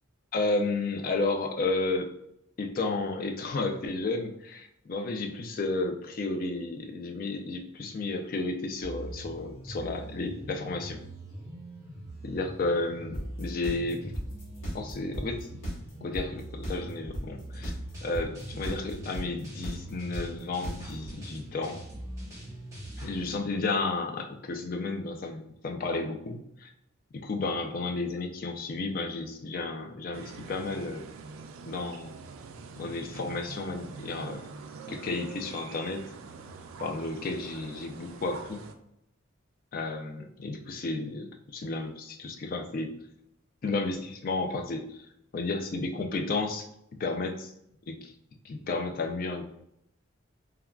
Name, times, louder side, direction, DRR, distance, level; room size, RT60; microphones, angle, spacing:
voice 1, 0.3-2.1 2.6-11.0 12.2-14.2 14.7-15.5 16.0-17.7 18.0-21.8 23.0-26.7 27.1-31.1 31.7-32.1 32.8-34.5 34.9-36.0 36.8-38.6 39.7-42.9 43.6-45.1 45.3-46.7 47.0-47.5 47.9-48.1 48.4-49.4, left 3 dB, 45° left, 4 dB, 0.3 m, -32 dB
sound 1, 8.8-23.3, right 1 dB, 15° right, 0.7 m, -43 dB
sound 2, 13.1-21.1, equal, 75° left, 1.0 m, -35 dB
sound 3, 30.1-38.7, right 5 dB, 80° right, 0.3 m, -45 dB
3.4 x 2.2 x 2.3 m, 0.77 s
head